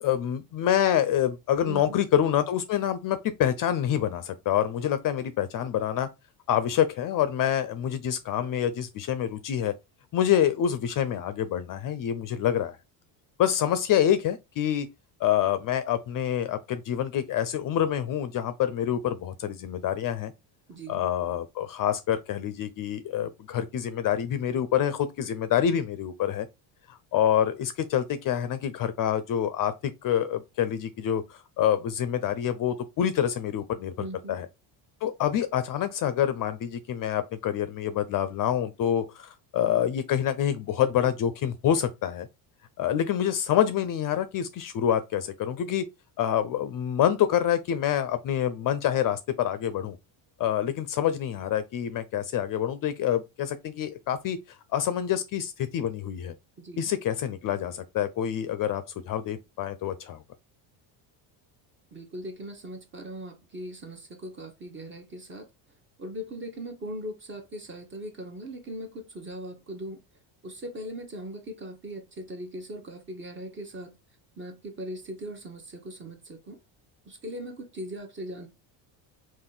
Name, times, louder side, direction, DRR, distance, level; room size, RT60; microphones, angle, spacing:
voice 1, 0.0-6.1 6.5-9.7 10.1-12.8 13.4-14.9 15.2-20.3 20.9-26.5 26.9-34.5 35.0-42.3 42.8-45.9 46.2-50.0 50.4-54.4 54.7-56.3 56.8-60.2, left 10 dB, 45° left, 0.5 m, -27 dB
voice 2, 1.7-2.0 20.7-21.1 34.0-34.4 56.6-56.9 61.9-65.5 66.0-70.0 70.4-73.9 74.4-76.6 77.1-78.5, equal, 25° right, 0.9 m, -39 dB
3.6 x 2.6 x 3.8 m
cardioid pair, 115°, 48 cm